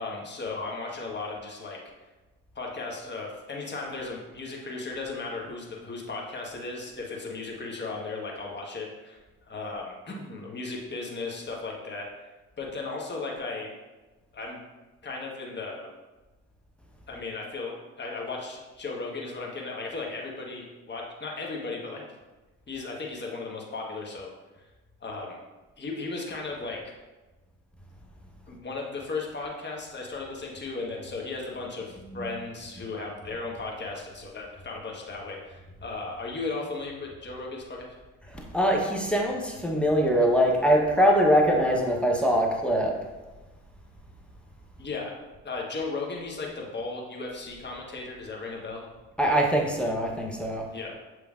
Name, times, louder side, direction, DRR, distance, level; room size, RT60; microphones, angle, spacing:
voice 1, 0.0-1.8 2.5-12.3 12.6-13.7 14.3-14.6 15.0-15.9 17.1-22.0 22.7-24.3 25.0-25.4 25.8-26.9 28.5-38.0 44.8-48.9 50.7-50.9, left 3 dB, 25° left, -1 dB, 1.3 m, -36 dB
voice 2, 38.3-42.9 49.2-50.7, equal, 5° left, 0 dB, 0.9 m, -23 dB
6.8 x 3.2 x 2.4 m, 1.2 s
hypercardioid pair, 55°, 40 cm